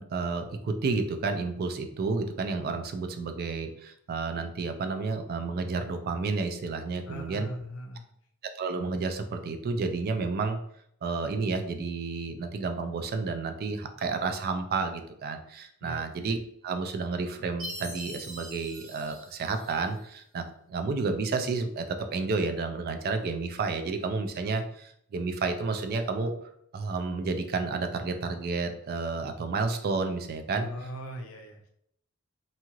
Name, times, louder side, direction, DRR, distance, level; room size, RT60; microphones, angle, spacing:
voice 1, 0.0-7.5 8.6-10.6 11.0-16.4 16.6-26.3 26.7-30.7, right 4 dB, 45° right, 7 dB, 0.3 m, -31 dB
voice 2, 7.1-8.1 15.8-16.0 30.5-31.7, left 1 dB, 65° left, 2 dB, 0.6 m, -40 dB
Chime, 17.6-20.0, equal, 65° right, 0.7 m, -43 dB
2.7 x 2.4 x 2.9 m, 0.70 s
head